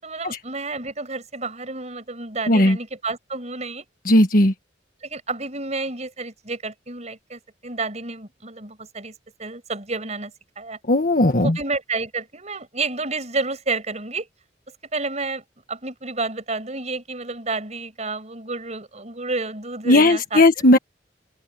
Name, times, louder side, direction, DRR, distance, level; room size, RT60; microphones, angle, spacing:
voice 1, 0.0-3.9 5.0-9.1 9.4-10.8 11.4-14.3 14.9-20.7, right 3 dB, 40° right, 7.1 m, -30 dB
voice 2, 4.1-4.5 10.9-11.6 19.9-20.8, left 1 dB, 50° left, 1.6 m, -16 dB
open air
head